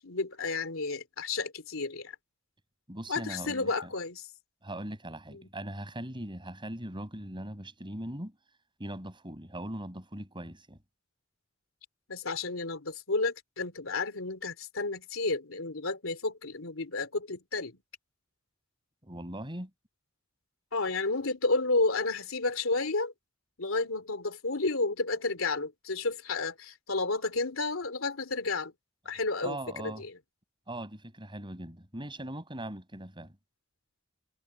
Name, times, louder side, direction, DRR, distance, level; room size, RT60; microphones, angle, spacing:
voice 1, 0.0-2.1 3.1-4.3 12.1-17.8 20.7-23.1 23.6-28.7 29.0-30.1, left 3 dB, 80° left, 3.1 m, -31 dB
voice 2, 2.9-3.9 4.6-8.4 8.8-10.8 19.0-19.7 29.4-30.0 30.7-33.4, right 1 dB, 25° right, 6.9 m, -40 dB
head